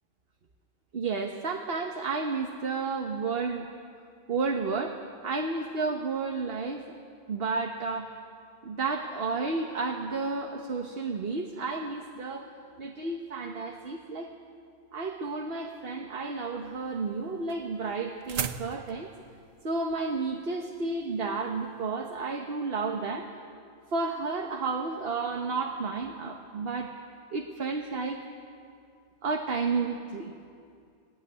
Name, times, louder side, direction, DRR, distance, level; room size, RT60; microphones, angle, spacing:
voice 1, 0.9-3.7 4.3-5.0 5.2-7.0 7.3-8.1 8.6-12.5 12.8-14.3 14.9-19.1 19.6-23.3 23.9-27.0 27.3-28.2 29.2-30.3, right 4 dB, 50° right, 3 dB, 1.4 m, -31 dB
sound 1, 16.6-21.8, right 8 dB, 90° right, 1.3 m, -40 dB
21.0 x 18.0 x 9.6 m, 2.4 s
omnidirectional pair, 1.3 m